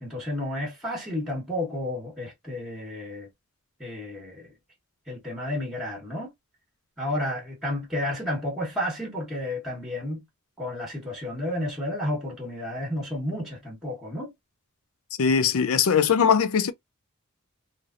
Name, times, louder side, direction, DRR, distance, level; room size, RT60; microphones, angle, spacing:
voice 1, 0.0-3.3 3.8-4.5 5.1-6.3 7.0-10.2 10.6-14.3, left 1 dB, ahead, 1.2 m, -31 dB
voice 2, 15.2-16.7, left 6 dB, 70° left, 0.4 m, -21 dB
3.2 x 2.5 x 2.5 m
head